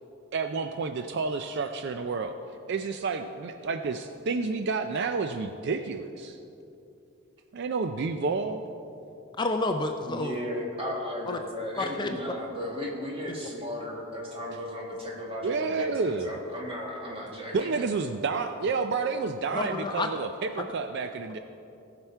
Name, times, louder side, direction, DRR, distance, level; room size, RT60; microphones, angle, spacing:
voice 1, 0.3-2.4 2.7-6.4 7.5-8.6 15.4-16.3 17.5-21.4, right 4 dB, 55° right, 8 dB, 0.4 m, -30 dB
voice 2, 9.4-10.4 11.3-11.4 11.8-12.2 13.3-13.4 19.5-20.1 20.6-20.7, left 2 dB, 20° left, 5 dB, 0.4 m, -30 dB
voice 3, 10.0-17.8, equal, 25° right, -2 dB, 1.8 m, -35 dB
17.5 x 5.9 x 4.5 m, 2.9 s
head